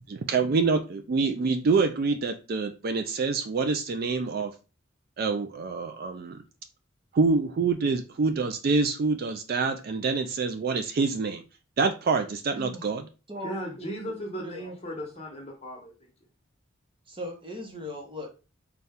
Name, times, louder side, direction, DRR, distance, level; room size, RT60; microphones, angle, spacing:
voice 1, 0.1-4.5 5.2-6.4 7.1-11.4 11.8-13.0, right 4 dB, 45° right, 0.3 m, -26 dB
voice 2, 12.6-12.9 13.3-14.7 15.0-15.1 17.1-18.3, left 1 dB, 25° right, 0.8 m, -39 dB
voice 3, 13.4-16.1, equal, 30° left, 1.1 m, -37 dB
4.1 x 2.3 x 3.5 m
head